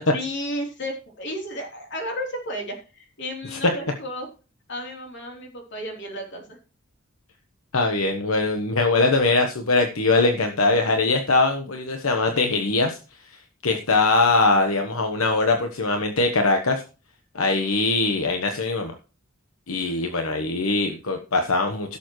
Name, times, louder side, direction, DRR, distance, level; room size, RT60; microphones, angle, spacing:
voice 1, 0.1-4.3 4.7-6.6 19.8-20.1, equal, 60° left, 1 dB, 3.5 m, -33 dB
voice 2, 7.7-13.0 13.6-16.8 17.3-18.9 19.7-22.0, left 3 dB, 85° left, 4 dB, 1.1 m, -22 dB
16.5 x 7.0 x 3.1 m, 0.34 s
head